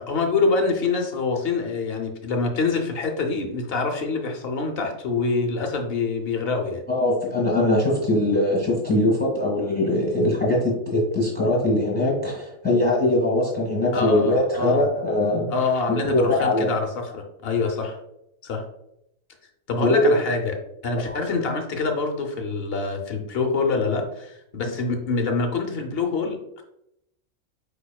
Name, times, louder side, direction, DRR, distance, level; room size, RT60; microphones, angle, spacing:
voice 1, 0.0-6.8 13.9-14.8 15.5-18.0 18.4-18.6 19.7-20.5 20.8-26.6, left 4 dB, 55° left, 4 dB, 0.8 m, -25 dB
voice 2, 6.9-15.5 16.0-16.7 19.8-20.2 21.1-21.2, left 1 dB, 5° left, -4 dB, 1.5 m, -21 dB
4.9 x 4.5 x 2.3 m, 0.80 s
omnidirectional pair, 1.4 m